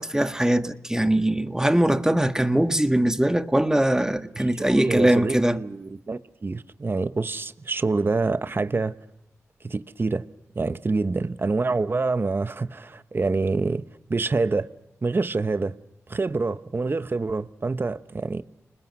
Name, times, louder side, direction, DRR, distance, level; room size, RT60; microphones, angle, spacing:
voice 1, 0.0-5.6, right 1 dB, 10° right, 1.6 m, -21 dB
voice 2, 4.4-8.9 9.6-10.2 10.5-13.8 14.1-14.7 15.0-15.8 16.1-18.4, right 3 dB, 40° right, 1.1 m, -26 dB
30.0 x 20.5 x 5.5 m
cardioid pair, 45°, 6 cm